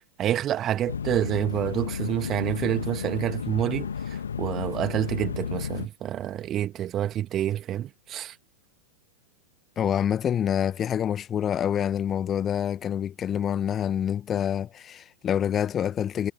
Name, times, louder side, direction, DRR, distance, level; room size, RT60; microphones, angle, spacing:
voice 1, 0.2-8.3, right 11 dB, 30° right, 2.2 m, -28 dB
sound 1, 0.9-5.9, left 7 dB, 70° left, 1.8 m, -32 dB
voice 2, 9.8-16.3, left 9 dB, 25° left, 1.6 m, -26 dB
figure-of-eight pair, 90°, 0 cm